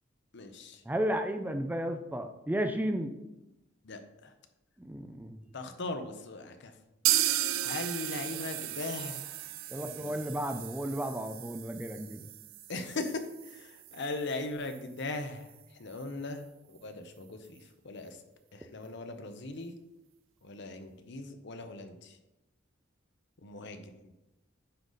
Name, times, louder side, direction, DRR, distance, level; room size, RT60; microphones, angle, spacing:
voice 1, 0.3-0.8 3.8-4.3 5.5-6.7 7.6-10.1 10.4-10.5 12.7-15.5 15.8-18.2 18.5-19.7 20.4-22.2 23.4-24.1, left 2 dB, 60° left, 7 dB, 0.8 m, -39 dB
voice 2, 0.9-3.1 4.8-5.4 9.7-12.3, right 1 dB, 10° right, 7 dB, 0.4 m, -33 dB
sound 1, 7.0-14.8 15.1-15.2 15.5-15.6 16.0-16.1, right 13 dB, 85° right, 0.4 m, -35 dB
9.8 x 4.0 x 4.0 m, 0.93 s
head